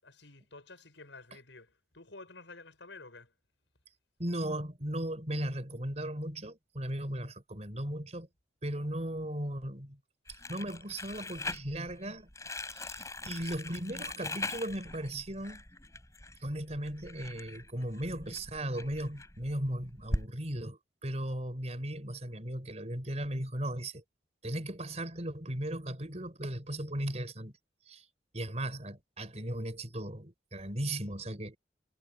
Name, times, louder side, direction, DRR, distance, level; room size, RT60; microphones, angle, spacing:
voice 1, 0.0-3.3, left 3 dB, 85° left, 5.9 m, -51 dB
voice 2, 4.2-8.3 8.6-10.0 10.5-12.3 12.6-15.6 16.4-24.0 24.4-27.5 27.9-28.0 28.3-31.6, right 1 dB, 35° right, 4.7 m, -37 dB
Crumpling crinkling, 10.3-20.2, left 2 dB, 15° left, 5.5 m, -41 dB
head